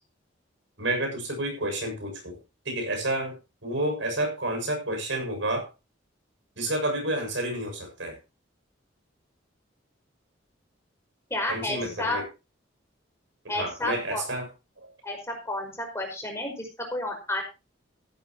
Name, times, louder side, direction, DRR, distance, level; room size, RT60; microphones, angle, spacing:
voice 1, 0.8-2.4 2.7-5.7 6.6-8.2 11.5-12.3 13.4-14.5 14.8-14.9, right 1 dB, 70° right, 3 dB, 7.0 m, -30 dB
voice 2, 11.3-12.2 13.5-14.2 15.0-17.4, left 1 dB, 15° left, 2 dB, 5.4 m, -31 dB
15.0 x 13.0 x 3.0 m, 0.28 s
head